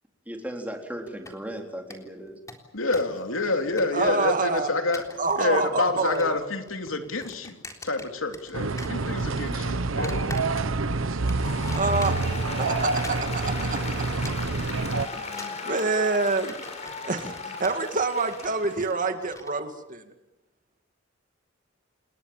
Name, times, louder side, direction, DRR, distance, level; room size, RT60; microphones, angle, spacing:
voice 1, 0.3-2.4, right 1 dB, 10° right, 2 dB, 4.1 m, -36 dB
sound 1, 1.1-1.6 1.9-2.0 2.3-3.2 3.4-4.3 4.8-5.5 5.8-6.4 6.7-8.5 8.8-9.5 10.0-10.9 11.3-12.4 12.8-19.5, left 2 dB, 15° left, 3.7 m, -44 dB
voice 2, 2.7-5.0 5.4-10.3, left 3 dB, 85° left, 5 dB, 3.1 m, -28 dB
voice 3, 3.9-4.7 5.2-6.4 11.4-12.2 12.6-13.8 14.1-14.2 15.1-16.5 16.9-20.0, right 3 dB, 40° right, 6 dB, 2.3 m, -27 dB
sound 2, 8.5-15.1, right 3 dB, 75° right, 1.1 m, -27 dB
Applause, 11.3-18.9, left 3 dB, 35° left, 6.4 m, -37 dB
28.5 x 21.0 x 7.4 m, 0.95 s
head